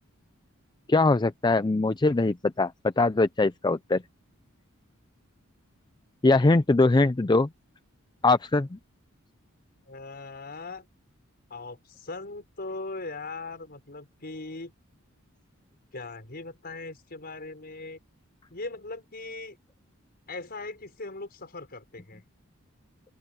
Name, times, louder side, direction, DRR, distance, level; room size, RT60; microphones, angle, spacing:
voice 1, 0.9-4.0 6.2-7.5 8.2-8.8, left 3 dB, 20° left, 0.5 m, -22 dB
voice 2, 9.9-10.9 11.5-14.7 15.9-18.0 18.5-19.6 20.3-22.2, left 3 dB, 50° left, 5.1 m, -39 dB
open air
head